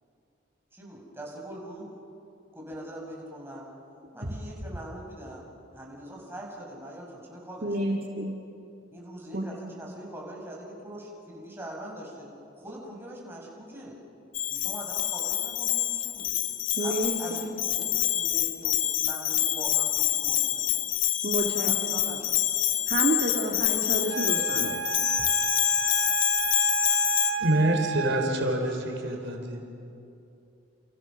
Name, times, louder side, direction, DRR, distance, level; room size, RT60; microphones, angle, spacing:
voice 1, 0.7-1.9 2.5-3.7 4.1-5.4 5.7-8.0 8.9-12.3 12.5-14.0 14.5-16.4 16.8-21.0 21.4-22.4, right 1 dB, 10° right, -2 dB, 5.9 m, -42 dB
voice 2, 7.6-8.4 9.3-9.4 16.8-17.5 21.2-22.1 22.9-24.8, right 1 dB, 50° right, -1 dB, 2.1 m, -30 dB
Bell, 14.3-27.3, left 13 dB, 85° left, 1.4 m, -26 dB
Wind instrument woodwind instrument, 24.1-28.7, right 8 dB, 90° right, 0.6 m, -32 dB
voice 3, 27.4-29.6, right 1 dB, 65° right, 3 dB, 4.1 m, -26 dB
30.0 x 29.5 x 6.2 m, 2.7 s
head